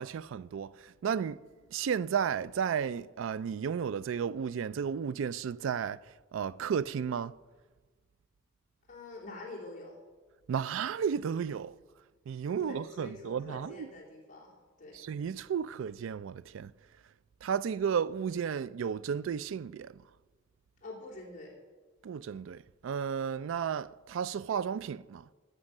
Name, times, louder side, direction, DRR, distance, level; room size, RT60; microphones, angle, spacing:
voice 1, 0.0-1.4 1.7-6.0 6.3-7.4 10.5-11.7 12.3-13.9 14.9-16.7 17.4-20.0 22.0-25.3, right 7 dB, 75° right, 0.3 m, -33 dB
voice 2, 8.9-10.0 12.5-14.5 14.8-15.0 20.8-21.5, left 2 dB, 35° left, 3.0 m, -46 dB
13.0 x 6.5 x 6.5 m
head